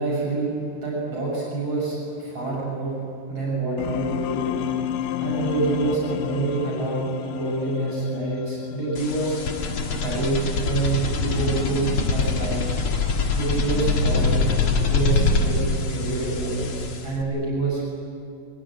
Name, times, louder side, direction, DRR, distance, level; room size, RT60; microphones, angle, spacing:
voice 1, 0.0-2.9 3.3-4.6 5.2-9.4 10.0-12.8 13.3-14.5 14.8-17.9, right 3 dB, 35° right, -5 dB, 7.2 m, -27 dB
sound 1, 3.8-10.8, left 11 dB, 80° left, 2.9 m, -31 dB
sound 2, 8.9-17.2, left 3 dB, 50° left, 1.9 m, -24 dB
23.5 x 22.5 x 8.9 m, 2.5 s
omnidirectional pair, 4.7 m